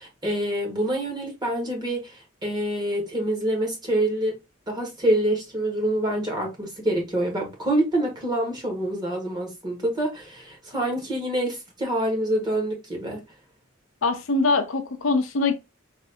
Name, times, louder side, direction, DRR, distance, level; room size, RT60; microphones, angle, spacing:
voice 1, 0.0-4.4 4.7-13.2, right 1 dB, 20° right, 1.3 m, -26 dB
voice 2, 14.0-15.5, left 3 dB, 70° left, 0.6 m, -23 dB
4.0 x 2.6 x 2.6 m
head